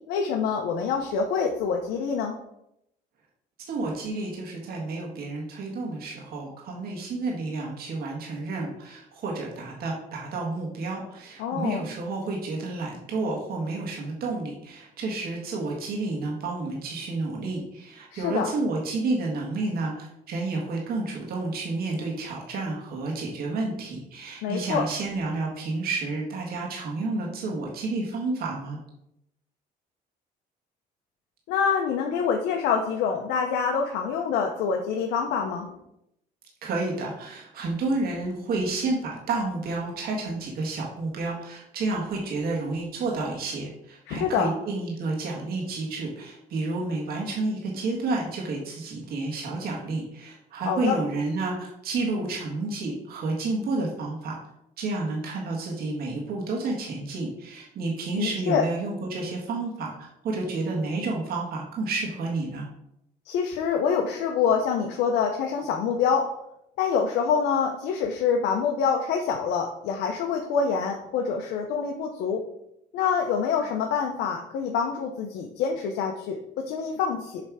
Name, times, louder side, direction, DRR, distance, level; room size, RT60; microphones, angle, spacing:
voice 1, 0.1-2.4 11.4-11.9 18.1-18.5 24.4-24.9 31.5-35.7 44.1-44.5 50.7-51.0 58.2-58.7 63.3-66.3 66.8-72.4 72.9-77.4, left 6 dB, 85° left, 2 dB, 0.8 m, -26 dB
voice 2, 3.7-28.8 36.6-54.4 54.8-62.7, right 3 dB, 65° right, -2 dB, 1.8 m, -30 dB
7.3 x 3.4 x 4.8 m, 0.79 s
cardioid pair, 110°, 17 cm